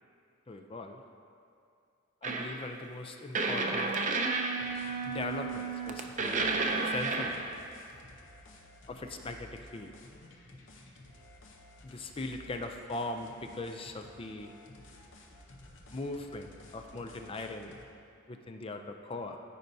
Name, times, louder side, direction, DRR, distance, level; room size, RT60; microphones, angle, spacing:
voice 1, 0.5-1.0 2.2-4.0 5.1-6.5 6.8-7.4 8.9-9.9 11.8-14.5 15.9-17.7 18.3-19.4, left 2 dB, 25° left, 5 dB, 0.4 m, -40 dB
sound 1, 2.2-2.6 3.4-7.5, right 3 dB, 35° right, 0.5 m, -31 dB
sound 2, 4.6-17.8, left 1 dB, 65° left, 0.8 m, -54 dB
13.5 x 5.2 x 2.7 m, 2.5 s
head